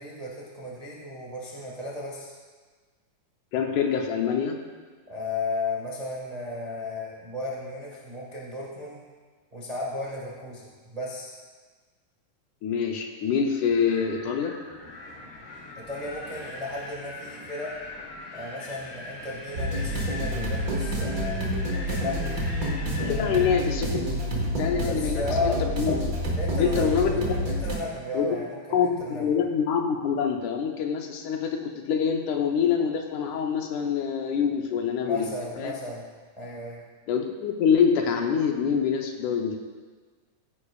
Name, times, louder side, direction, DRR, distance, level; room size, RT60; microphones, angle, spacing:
voice 1, 0.0-2.3 5.1-9.0 9.5-11.4 15.7-17.8 18.3-21.4 21.7-22.5 23.0-23.5 24.8-25.6 26.3-29.3 35.0-36.1 36.4-36.8, left 2 dB, 75° right, -4 dB, 0.3 m, -34 dB
voice 2, 3.5-4.6 12.6-14.6 23.0-24.3 24.6-26.0 26.6-27.4 28.1-28.4 28.7-35.3 35.6-35.7 37.1-39.6, left 7 dB, 75° left, 3 dB, 2.0 m, -25 dB
Wind, 13.7-23.6, left 2 dB, 50° left, 1.7 m, -41 dB
sound 1, 19.5-27.8, equal, 45° right, 1.1 m, -28 dB
15.5 x 9.9 x 2.4 m, 1.5 s
omnidirectional pair, 3.9 m